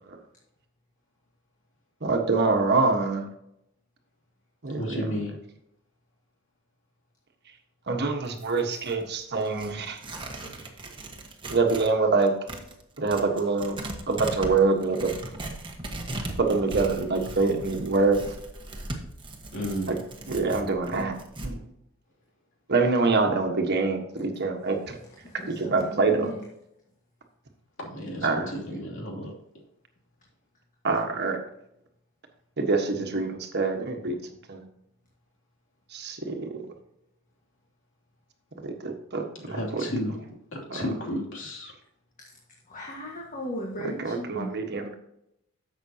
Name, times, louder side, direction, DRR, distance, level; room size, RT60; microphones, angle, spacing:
voice 1, 2.0-3.3 4.6-5.1 7.9-10.0 11.5-12.3 13.0-13.8 14.1-15.1 16.4-18.2 19.9-20.0 20.3-21.1 21.4-21.6 22.7-25.0 25.5-26.3 28.2-28.5 30.8-31.4 32.6-34.2 34.5-34.6 35.9-36.7 38.6-39.8 40.7-40.8 44.0-44.9, right 3 dB, 50° right, 3 dB, 1.3 m, -25 dB
voice 2, 4.7-5.3 19.5-19.9 27.8-29.3 39.5-40.2 40.5-41.7, equal, 65° left, -2 dB, 2.8 m, -32 dB
Tearing, 8.2-11.9 12.2-21.5, right 1 dB, 25° right, 1.3 m, -38 dB
voice 3, 25.3-26.4 42.7-44.5, equal, 40° left, -2 dB, 1.7 m, -36 dB
11.0 x 7.5 x 2.8 m, 0.79 s
head